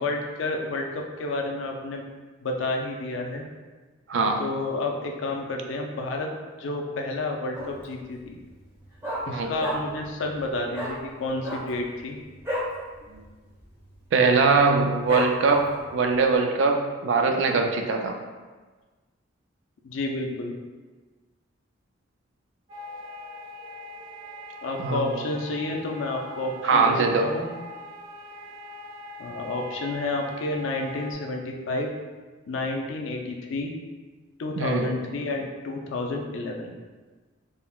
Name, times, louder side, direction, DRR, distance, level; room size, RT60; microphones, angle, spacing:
voice 1, 0.0-2.0 2.4-3.5 4.4-6.3 6.6-8.4 9.3-12.2 19.8-20.5 24.6-26.9 27.2-27.5 29.2-31.9 32.5-33.7 34.4-36.7, left 2 dB, 70° left, 1 dB, 0.4 m, -30 dB
voice 2, 4.1-4.4 9.3-9.5 13.1-13.2 14.1-18.2 24.8-25.2 26.6-27.3 34.6-34.9, right 4 dB, 65° right, 4 dB, 0.3 m, -22 dB
Dog, 7.5-8.0 8.3-8.4 8.6-10.1 10.3-10.4 10.7-11.0 11.3-12.8 13.1-13.3 13.5-14.0 14.4-14.5 15.1-15.9 16.4-16.5, equal, 15° right, 0.9 m, -31 dB
sound 1, 22.7-31.1, left 1 dB, 90° right, 0.8 m, -42 dB
3.7 x 2.1 x 2.3 m, 1.3 s
head